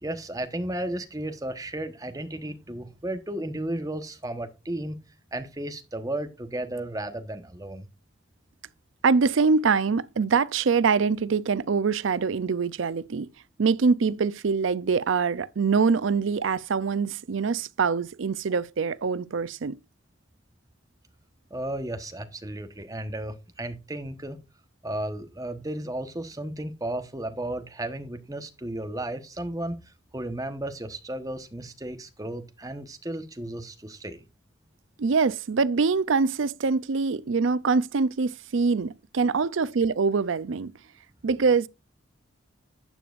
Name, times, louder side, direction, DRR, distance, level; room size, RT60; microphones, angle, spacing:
voice 1, 0.0-5.0 5.3-7.9 21.5-24.4 24.8-34.2, right 1 dB, 15° right, 1.1 m, -34 dB
voice 2, 9.0-13.3 13.6-19.8 35.0-40.7 41.2-41.7, right 5 dB, 75° right, 0.5 m, -24 dB
12.0 x 8.6 x 2.5 m
head